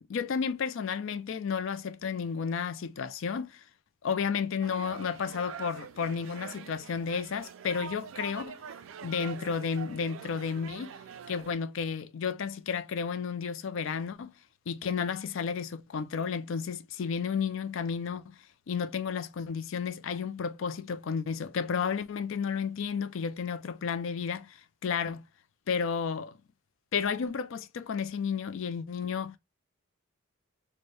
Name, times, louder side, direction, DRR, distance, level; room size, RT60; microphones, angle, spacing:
voice 1, 0.0-3.6 4.0-8.6 9.0-10.9 11.3-14.3 14.7-18.4 18.7-25.2 25.7-26.4 26.9-29.4, left 6 dB, 60° left, 0.4 m, -32 dB
sound 1, 4.6-11.5, right 7 dB, 65° right, 0.3 m, -45 dB
4.4 x 2.1 x 3.1 m
head